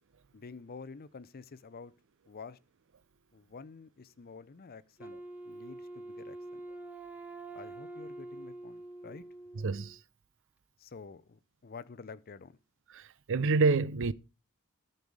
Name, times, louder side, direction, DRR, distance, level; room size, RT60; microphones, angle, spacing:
voice 1, 0.3-1.9 2.3-2.6 3.3-5.2 5.5-6.6 7.5-9.3 10.8-12.6, left 4 dB, 45° left, 0.6 m, -49 dB
Wind instrument woodwind instrument, 5.0-10.0, right 2 dB, 5° right, 0.9 m, -45 dB
voice 2, 9.6-10.0 12.9-14.1, right 3 dB, 60° right, 0.5 m, -27 dB
13.5 x 5.4 x 4.7 m
head